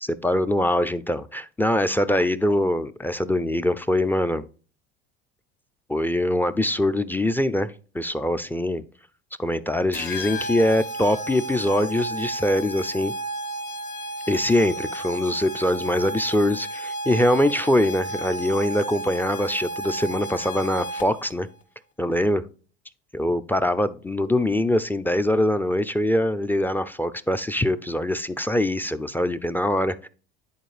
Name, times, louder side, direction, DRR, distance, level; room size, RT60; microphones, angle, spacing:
voice 1, 0.0-4.5 5.9-8.8 9.4-13.1 14.3-21.5 22.0-22.4 23.1-30.1, left 1 dB, 5° left, 11 dB, 0.3 m, -23 dB
sound 1, 9.9-21.3, right 1 dB, 65° left, 1.9 m, -33 dB
10.0 x 4.3 x 3.2 m, 0.39 s
supercardioid pair, 100°, 30 cm